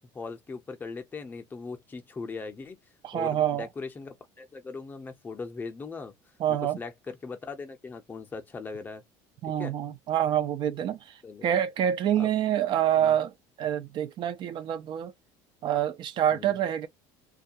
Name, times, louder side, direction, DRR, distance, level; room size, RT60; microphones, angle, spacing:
voice 1, 0.1-2.8 3.1-6.1 6.5-9.0 9.4-9.8 11.2-11.5 12.1-12.3 13.0-13.1 16.3-16.6, left 4 dB, 15° left, 0.6 m, -39 dB
voice 2, 3.0-3.7 6.4-6.8 9.4-15.1 15.6-16.9, right 10 dB, 40° right, 0.4 m, -27 dB
2.3 x 2.1 x 2.6 m
cardioid pair, 150°, 12 cm